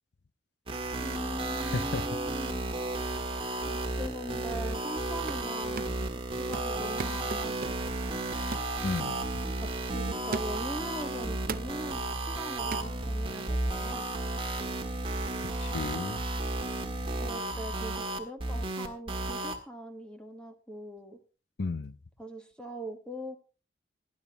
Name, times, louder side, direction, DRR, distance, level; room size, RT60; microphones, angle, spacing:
sound 1, 0.7-19.6, right 2 dB, 30° right, 1.8 m, -33 dB
voice 1, 1.0-2.7 3.7-6.0 6.3-8.5 9.6-14.1 17.2-21.2 22.2-23.4, equal, 5° left, 1.7 m, -41 dB
voice 2, 1.7-2.0 8.8-9.2 15.4-16.2 21.6-21.9, left 3 dB, 65° left, 0.6 m, -33 dB
sound 2, 5.3-5.5 5.8-6.1 6.5-8.0 8.5-8.8 9.3-9.4 10.3-10.8 11.5-11.8 12.7-12.9, right 4 dB, 50° right, 0.5 m, -38 dB
18.5 x 11.0 x 3.1 m
head